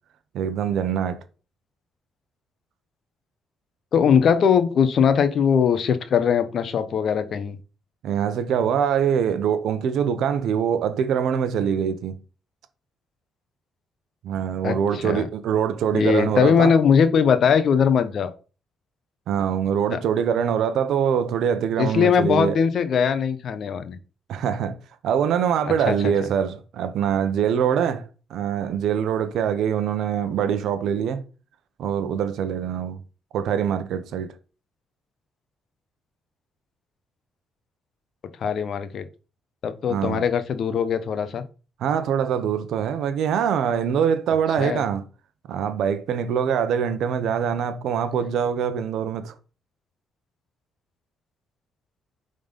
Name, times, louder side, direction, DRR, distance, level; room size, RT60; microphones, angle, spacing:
voice 1, 0.3-1.2 8.0-12.1 14.2-16.7 19.3-22.6 24.3-24.8 25.0-31.2 31.8-33.0 33.3-34.3 39.9-40.2 41.8-45.0 45.5-49.3, right 8 dB, 75° right, 0.8 m, -24 dB
voice 2, 3.9-7.6 14.6-15.3 15.9-18.3 19.9-20.0 21.8-24.0 25.9-26.1 38.4-39.0 39.6-41.4 44.6-44.8, left 7 dB, 60° left, 0.8 m, -20 dB
5.4 x 3.8 x 5.1 m
cardioid pair, 90°, 0 cm